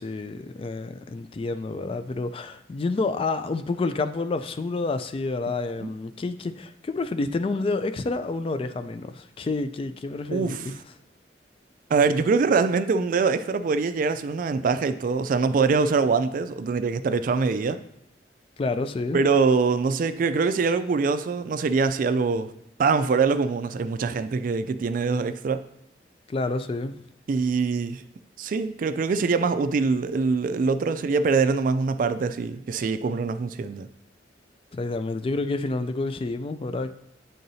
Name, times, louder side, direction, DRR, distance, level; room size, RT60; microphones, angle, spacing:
voice 1, 0.0-10.8 18.6-19.2 26.3-27.0 34.7-36.9, left 3 dB, 30° left, 0.3 m, -29 dB
voice 2, 10.3-10.6 11.9-17.8 19.1-22.5 22.8-25.6 27.3-28.0 28.4-33.9, right 4 dB, 50° right, 0.3 m, -23 dB
9.1 x 3.8 x 2.7 m
head